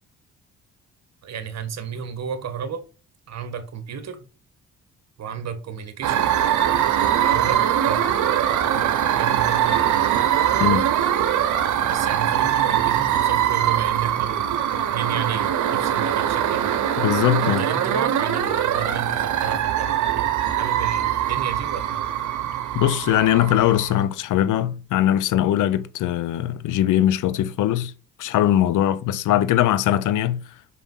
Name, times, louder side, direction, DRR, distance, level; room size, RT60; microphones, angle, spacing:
voice 1, 1.2-2.8 3.3-4.3 5.2-6.3 7.2-8.1 8.6-10.3 11.8-16.8 17.4-22.1, right 7 dB, 60° right, 1.8 m, -32 dB
sound 1, 6.0-24.0, right 10 dB, 80° right, 1.2 m, -22 dB
voice 2, 17.0-17.6 22.7-27.9 28.2-30.4, left 12 dB, 80° left, 0.8 m, -21 dB
5.9 x 5.6 x 5.6 m
cardioid pair, 90°, 30 cm